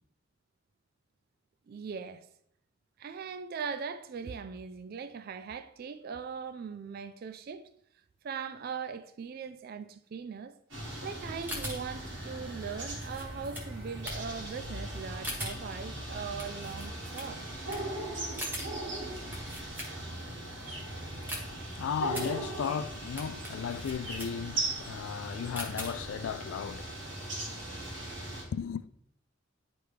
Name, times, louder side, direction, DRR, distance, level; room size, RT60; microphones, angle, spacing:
voice 1, 1.7-2.3 3.0-7.7 8.2-10.6 11.0-17.5, right 6 dB, 50° right, 0.3 m, -40 dB
sound 1, 10.7-28.4, right 1 dB, 65° right, 1.7 m, -39 dB
sound 2, 11.4-20.3 20.7-26.3, equal, 10° right, 1.2 m, -43 dB
voice 2, 20.1-27.5 27.9-28.9, left 7 dB, 80° left, 0.3 m, -37 dB
9.4 x 3.4 x 3.2 m
head